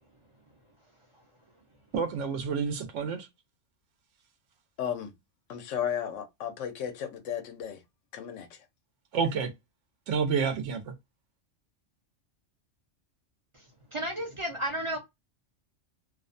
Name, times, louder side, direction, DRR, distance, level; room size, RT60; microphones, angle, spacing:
voice 1, 1.9-3.3 9.1-9.5 10.1-10.9, right 6 dB, 85° right, 0.9 m, -29 dB
voice 2, 4.8-5.1 5.5-7.8 8.1-8.5, left 9 dB, 85° left, 1.0 m, -34 dB
voice 3, 13.9-15.0, right 1 dB, 40° right, 0.5 m, -32 dB
2.6 x 2.1 x 2.4 m
omnidirectional pair, 1.2 m